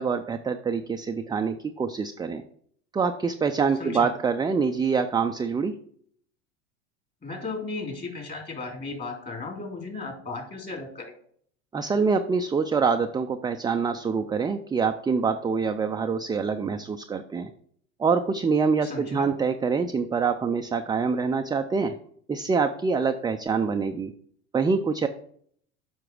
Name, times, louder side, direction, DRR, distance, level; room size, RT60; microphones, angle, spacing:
voice 1, 0.0-2.4 2.9-5.7 11.7-17.5 18.0-21.9 22.3-24.1 24.5-25.1, right 5 dB, 10° right, 6 dB, 0.4 m, -25 dB
voice 2, 3.8-4.1 7.2-11.1 18.8-19.3, left 3 dB, 25° left, 1 dB, 3.6 m, -35 dB
7.6 x 5.8 x 4.9 m, 0.62 s
hypercardioid pair, 80°, 37 cm